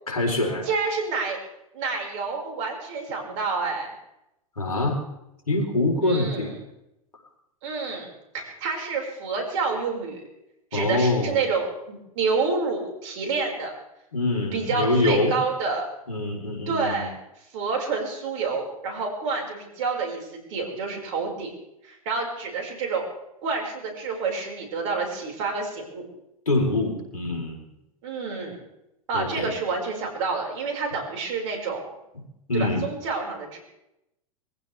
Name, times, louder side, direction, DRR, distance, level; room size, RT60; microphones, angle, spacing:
voice 1, 0.1-0.7 4.6-5.0 5.5-6.6 10.7-11.3 14.1-15.4 16.1-17.1 26.5-27.6 29.1-29.5 32.5-32.9, left 2 dB, 90° left, 1 dB, 4.2 m, -24 dB
voice 2, 0.6-1.4 1.7-3.9 6.0-6.5 7.6-8.1 8.3-10.2 10.7-13.7 14.5-15.9 16.7-17.1 17.5-21.5 21.8-23.1 23.4-26.1 28.0-28.6 29.1-31.9 32.5-33.6, right 4 dB, 60° right, 1 dB, 5.6 m, -28 dB
23.5 x 15.5 x 3.5 m, 0.86 s
hypercardioid pair, 95°, 18 cm